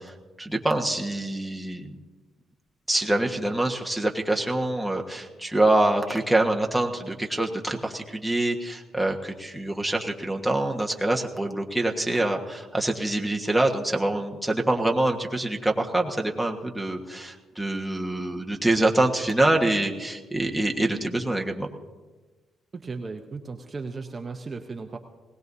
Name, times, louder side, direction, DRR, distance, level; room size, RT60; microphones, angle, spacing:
voice 1, 0.0-1.9 2.9-21.7, right 1 dB, ahead, 0 dB, 1.4 m, -25 dB
voice 2, 22.7-25.0, right 4 dB, 35° right, 4 dB, 0.9 m, -36 dB
20.0 x 18.5 x 2.7 m, 1.3 s
cardioid pair, 90°, 0 cm